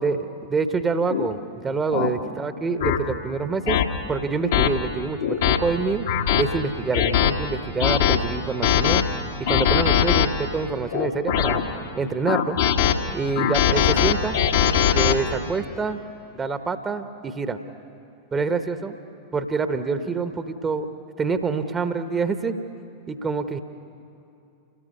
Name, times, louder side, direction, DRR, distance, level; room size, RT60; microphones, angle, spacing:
voice 1, 0.0-3.8 4.1-5.2 5.5-6.1 6.4-9.0 9.5-11.6 12.0-12.6 13.1-14.4 14.9-16.0 16.3-17.6 18.3-18.9 19.3-20.9 21.2-22.5 23.1-23.6, right 4 dB, 20° right, 9 dB, 1.1 m, -26 dB
sound 1, 1.1-1.3 1.9-2.1 2.8-3.0 3.7-3.9 4.5-4.7 5.2-5.6 6.1-6.4 6.9-7.3 7.8-8.2 8.6-9.0 9.5-10.3 10.9-11.6 12.3-12.9 13.4-15.1, left 9 dB, 60° left, 1.5 m, -20 dB
29.0 x 20.0 x 5.5 m, 2.7 s
figure-of-eight pair, 90°, 0 cm